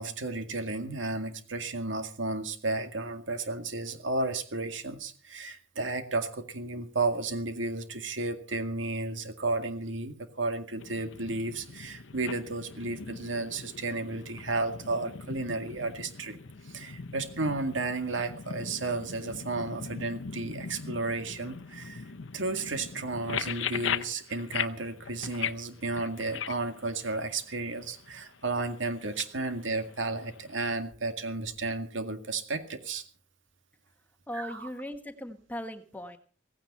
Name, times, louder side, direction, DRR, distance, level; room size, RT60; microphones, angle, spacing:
voice 1, 0.0-16.4 16.6-22.0 22.3-33.0 34.3-34.7, right 3 dB, 85° right, 7 dB, 2.1 m, -33 dB
sound 1, 10.8-30.7, left 7 dB, 85° left, 0.8 m, -40 dB
voice 2, 34.3-36.2, equal, 10° left, 7 dB, 1.4 m, -38 dB
17.0 x 16.0 x 4.2 m, 0.42 s
head